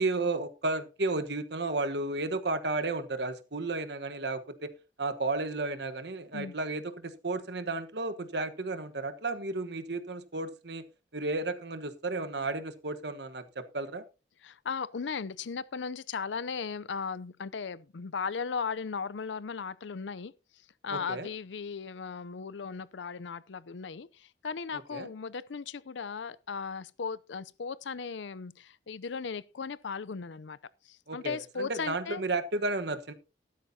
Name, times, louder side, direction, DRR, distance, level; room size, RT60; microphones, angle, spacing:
voice 1, 0.0-4.7 5.0-10.8 11.1-14.0 20.9-21.3 24.9-25.1 31.1-33.1, right 3 dB, 65° right, 1.2 m, -33 dB
voice 2, 14.4-20.3 20.8-30.6 30.8-32.2, left 5 dB, 85° left, 0.6 m, -37 dB
14.5 x 12.5 x 2.8 m
head